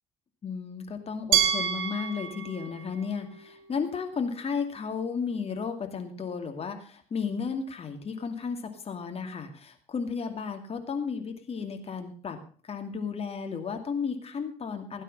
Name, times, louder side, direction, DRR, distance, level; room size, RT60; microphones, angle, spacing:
voice 1, 0.4-12.4 12.6-15.0, left 5 dB, 35° left, 5 dB, 2.5 m, -33 dB
Glass, 1.3-4.2, right 9 dB, 55° right, 3.0 m, -30 dB
17.5 x 9.1 x 5.6 m, 0.42 s
figure-of-eight pair, 55°, 18 cm